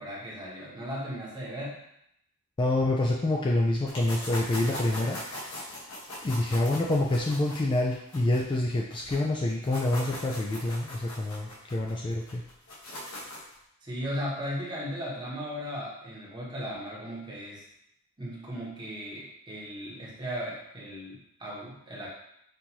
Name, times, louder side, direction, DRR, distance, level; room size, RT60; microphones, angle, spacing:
voice 1, 0.0-1.8 13.8-17.6 18.2-22.1, equal, 20° right, -5 dB, 1.0 m, -36 dB
voice 2, 2.6-5.2 6.2-12.4, left 2 dB, 20° left, -2 dB, 0.3 m, -27 dB
sound 1, 3.9-9.2 9.5-13.5, left 1 dB, 90° left, 1.3 m, -40 dB
5.3 x 2.6 x 3.0 m, 0.76 s
head